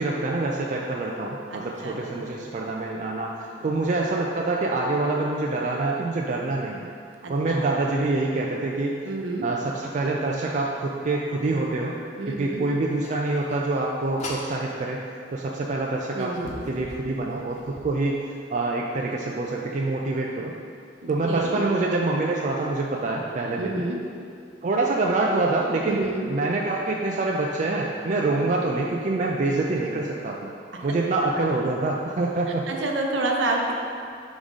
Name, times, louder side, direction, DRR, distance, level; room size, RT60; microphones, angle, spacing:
voice 1, 0.0-6.9 7.3-8.9 9.4-12.0 12.3-15.0 15.3-18.2 18.5-20.5 21.1-23.9 24.6-30.5 30.8-32.7, right 2 dB, 40° right, -2 dB, 0.4 m, -26 dB
voice 2, 1.5-2.5 3.6-3.7 7.2-7.7 9.0-9.5 12.2-12.6 16.1-16.6 21.0-21.6 23.6-24.0 25.9-26.3 29.7-29.9 32.7-33.7, right 2 dB, 90° right, 0 dB, 0.7 m, -29 dB
sound 1, 13.0-14.6 15.6-15.7 16.2-17.9, left 2 dB, 40° left, 0.6 m, -40 dB
5.0 x 3.6 x 5.4 m, 2.4 s
head